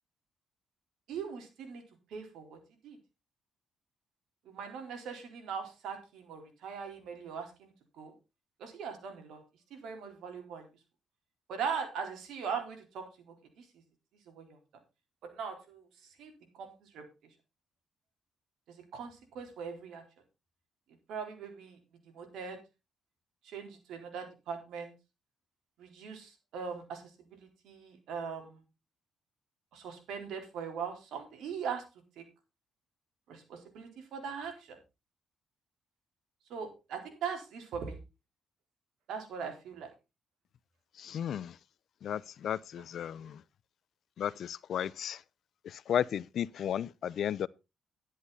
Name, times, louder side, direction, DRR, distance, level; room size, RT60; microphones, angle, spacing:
voice 1, 1.1-1.8 2.1-2.6 2.8-3.0 4.5-8.1 8.6-9.4 9.7-10.6 11.5-13.0 13.6-13.7 14.3-14.6 15.2-15.8 16.2-16.3 16.6-17.0 18.9-20.0 21.1-21.8 22.1-22.6 23.4-24.9 25.8-27.0 27.3-28.6 29.7-31.8 32.2-32.3 33.3-34.8 36.5-38.0 39.1-39.9, right 6 dB, 80° right, 4.1 m, -40 dB
voice 2, 41.0-41.6 42.0-43.4 44.2-45.2 45.6-47.5, left 9 dB, 65° left, 0.5 m, -34 dB
12.0 x 10.0 x 4.1 m
cardioid pair, 90°, 0 cm